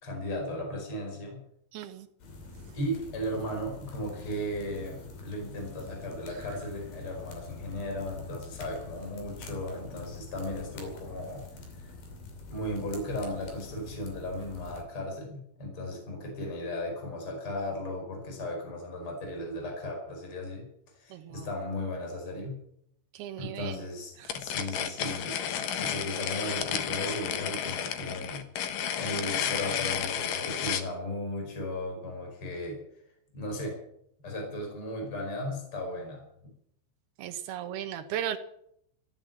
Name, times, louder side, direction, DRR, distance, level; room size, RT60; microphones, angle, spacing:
voice 1, 0.0-1.4 2.7-5.0 5.2-11.4 11.8-12.0 12.5-20.7 21.0-22.6 23.4-25.4 25.7-28.5 28.9-32.8 33.3-33.8 34.2-36.5, left 1 dB, 30° left, 1 dB, 5.5 m, -36 dB
voice 2, 1.7-2.1 6.5-6.6 21.1-21.5 23.1-23.9 24.2-24.4 37.2-38.4, right 10 dB, 70° right, 7 dB, 2.7 m, -36 dB
sound 1, 2.2-14.8, left 3 dB, 55° left, 4.3 m, -45 dB
sound 2, 24.3-30.9, left 9 dB, 75° left, 2.0 m, -32 dB
15.0 x 11.5 x 7.6 m, 0.72 s
omnidirectional pair, 5.6 m